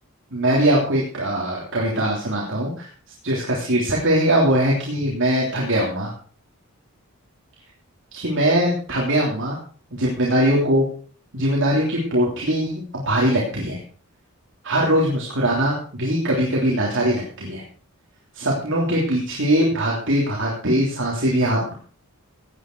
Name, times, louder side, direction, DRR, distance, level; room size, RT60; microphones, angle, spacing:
voice 1, 0.3-2.9 3.2-6.1 8.1-9.6 9.9-10.9 11.3-13.8 14.6-17.6 18.3-21.7, right 1 dB, 55° right, -3 dB, 3.3 m, -21 dB
17.5 x 9.5 x 4.6 m, 0.43 s
head